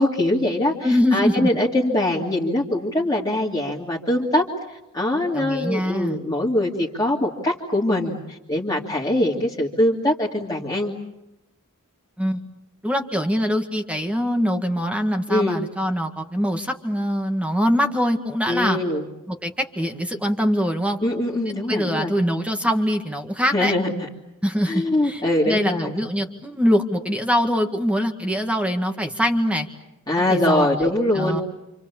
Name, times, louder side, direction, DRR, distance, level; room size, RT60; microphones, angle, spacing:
voice 1, 0.0-10.9 15.3-15.6 18.5-19.1 21.0-22.1 23.5-24.1 24.7-26.0 30.1-31.4, left 1 dB, 15° left, -3 dB, 2.8 m, -23 dB
voice 2, 0.8-1.5 5.3-6.2 12.2-12.4 12.8-18.8 19.3-21.0 21.7-23.7 24.4-29.7 30.3-30.9 31.2-31.4, equal, 5° right, 5 dB, 1.9 m, -23 dB
28.5 x 27.5 x 7.2 m, 0.92 s
head